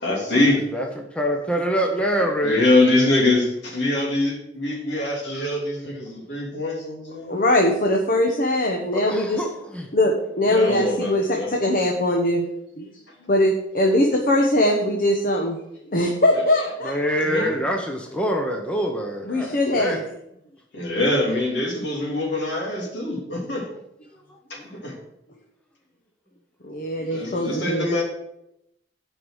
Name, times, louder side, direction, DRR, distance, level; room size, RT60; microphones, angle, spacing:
voice 1, 0.0-0.6 2.4-3.4 3.7-7.4 9.0-9.1 10.4-11.5 17.2-17.5 20.7-23.7 24.5-24.9 27.1-28.0, left 2 dB, 70° left, -1 dB, 2.9 m, -23 dB
voice 2, 0.7-2.7 8.9-9.9 16.8-20.0 24.6-24.8, equal, 5° left, 1 dB, 0.9 m, -25 dB
voice 3, 7.3-9.4 9.9-12.5 12.8-12.9 13.3-15.6 15.9-16.9 19.3-20.0 26.6-27.9, left 1 dB, 50° left, 1 dB, 1.1 m, -21 dB
9.4 x 5.4 x 6.3 m, 0.81 s
head